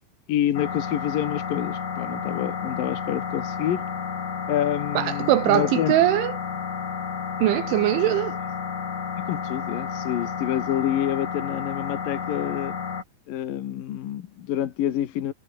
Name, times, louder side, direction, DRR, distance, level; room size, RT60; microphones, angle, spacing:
voice 1, 0.3-3.9 4.5-6.0 9.3-12.8 13.3-15.3, left 11 dB, 60° left, 2.8 m, -27 dB
sound 1, 0.5-13.0, left 6 dB, 40° left, 4.1 m, -31 dB
voice 2, 5.0-6.3 7.4-8.4, right 14 dB, 85° right, 3.9 m, -21 dB
omnidirectional pair, 5.4 m